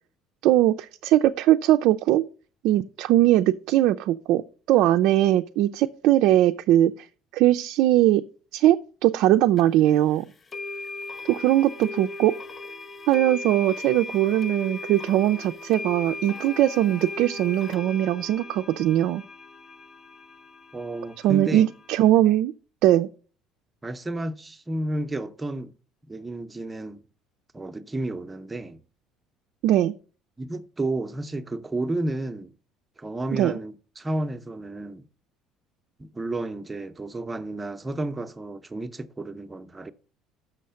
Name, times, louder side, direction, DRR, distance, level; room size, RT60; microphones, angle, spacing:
voice 1, 0.4-2.2 2.6-4.4 4.7-7.1 7.3-8.2 8.5-10.3 11.3-12.3 13.1-19.2 21.2-22.5 22.8-23.1 29.6-29.9 33.3-33.5, right 13 dB, 70° right, 0.4 m, -20 dB
sound 1, 9.6-9.7 10.5-22.1, left 3 dB, 30° left, 0.5 m, -38 dB
voice 2, 20.7-21.7 23.8-25.7 26.1-27.0 27.5-28.8 30.4-32.5 33.0-35.0 36.0-39.9, right 2 dB, 15° right, 0.7 m, -31 dB
6.4 x 6.3 x 5.6 m
supercardioid pair, 105°, 0 cm